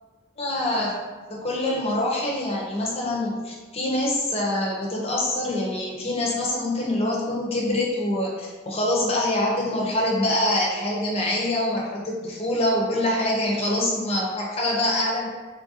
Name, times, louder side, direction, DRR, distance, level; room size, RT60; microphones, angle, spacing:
voice 1, 0.4-15.3, left 1 dB, 30° left, -3 dB, 0.5 m, -25 dB
3.1 x 2.4 x 2.7 m, 1.3 s
head